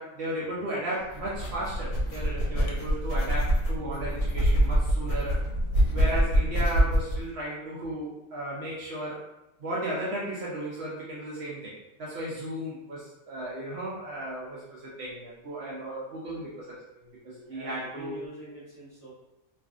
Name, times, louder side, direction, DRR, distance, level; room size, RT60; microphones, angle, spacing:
voice 1, 0.0-5.4 5.9-9.2 9.6-18.2, right 1 dB, 60° right, -7 dB, 0.7 m, -35 dB
sound 1, 1.1-7.2, equal, 70° left, 0.9 m, -25 dB
voice 2, 17.4-19.1, right 2 dB, 20° left, -11 dB, 0.6 m, -45 dB
2.4 x 2.4 x 2.3 m, 0.93 s
omnidirectional pair, 1.5 m